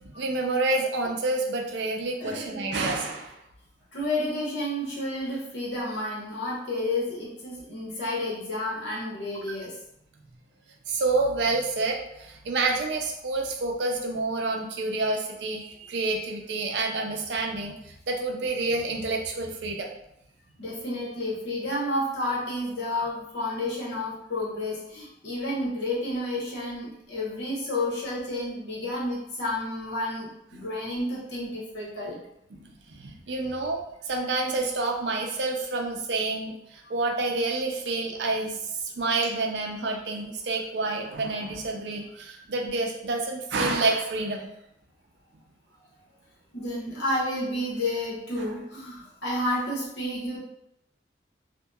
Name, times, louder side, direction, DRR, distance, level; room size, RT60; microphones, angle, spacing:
voice 1, 0.0-3.4 10.9-19.9 32.6-44.5, right 3 dB, 75° right, 2 dB, 0.4 m, -28 dB
voice 2, 2.2-2.7 3.9-9.7 20.6-32.2 34.5-34.7 46.5-50.4, left 1 dB, 80° left, -6 dB, 0.9 m, -31 dB
2.7 x 2.1 x 2.3 m, 0.79 s
head